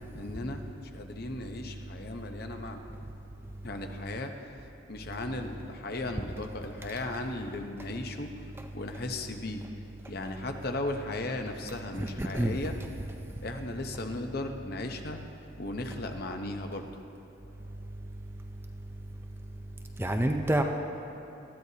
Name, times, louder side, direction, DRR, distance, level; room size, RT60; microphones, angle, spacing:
voice 1, 0.1-2.8 3.6-4.3 4.9-8.3 8.7-9.6 10.1-12.8 13.4-15.2 15.6-16.9, left 2 dB, 50° left, 5 dB, 0.8 m, -36 dB
voice 2, 12.0-12.6 20.0-20.6, right 1 dB, 10° right, 4 dB, 0.5 m, -27 dB
19.0 x 14.0 x 2.8 m, 2.8 s
head